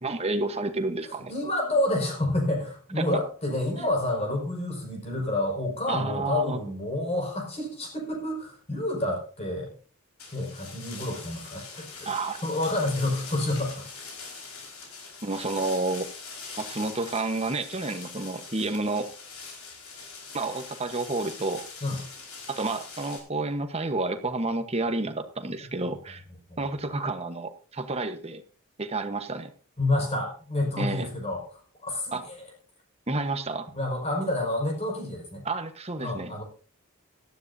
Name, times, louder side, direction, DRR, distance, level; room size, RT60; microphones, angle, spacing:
voice 1, 0.0-1.3 3.0-3.2 3.8-3.9 5.9-6.6 12.0-12.4 15.2-16.1 16.6-19.1 20.3-21.6 22.5-26.2 26.6-28.4 28.8-29.5 30.8-31.1 32.1-32.2 33.1-33.7 35.4-36.3, right 3 dB, 30° right, 8 dB, 1.1 m, -30 dB
voice 2, 1.3-9.7 10.3-12.1 12.4-13.9 21.8-22.0 26.5-26.6 29.8-31.4 31.8-32.5 33.7-35.4 36.0-36.4, left 1 dB, 30° left, 1 dB, 5.4 m, -29 dB
sound 1, 10.2-23.2, left 4 dB, 80° left, 5.0 m, -43 dB
18.0 x 12.5 x 2.7 m, 0.40 s
head